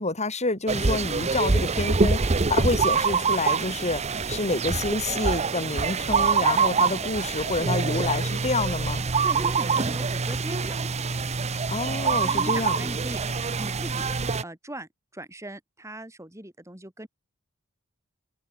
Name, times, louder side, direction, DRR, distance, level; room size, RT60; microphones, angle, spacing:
voice 1, 0.0-9.0 11.7-12.8, left 2 dB, 30° left, 4.0 m, -28 dB
sound 1, 0.7-14.4, right 4 dB, 30° right, 0.7 m, -25 dB
voice 2, 9.2-10.9 12.2-17.1, right 1 dB, 15° right, 6.3 m, -40 dB
open air
head